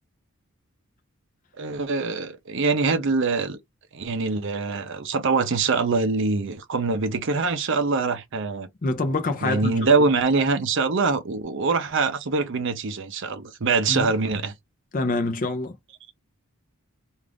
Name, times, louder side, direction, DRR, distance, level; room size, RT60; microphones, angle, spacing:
voice 1, 1.6-3.6 3.9-8.7 9.4-14.5, right 4 dB, 55° right, 0.6 m, -24 dB
voice 2, 8.8-9.8 13.9-14.1 14.9-15.7, left 2 dB, 35° left, 0.5 m, -25 dB
2.5 x 2.4 x 3.4 m
head